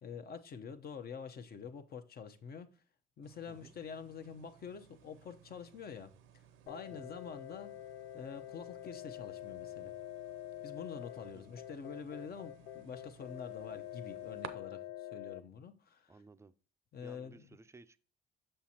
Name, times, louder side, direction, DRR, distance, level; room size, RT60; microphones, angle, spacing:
voice 1, 0.0-2.7 3.2-6.1 6.7-7.7 8.1-9.9 10.6-16.1 16.9-17.4, left 6 dB, 50° left, 0.8 m, -46 dB
sound 1, 3.2-14.5, right 10 dB, 80° right, 0.7 m, -57 dB
sound 2, 6.7-15.4, left 13 dB, 75° left, 0.4 m, -47 dB
voice 2, 16.1-16.5 17.0-18.0, right 3 dB, 15° right, 0.4 m, -58 dB
6.4 x 5.7 x 2.8 m
supercardioid pair, 80°, 20 cm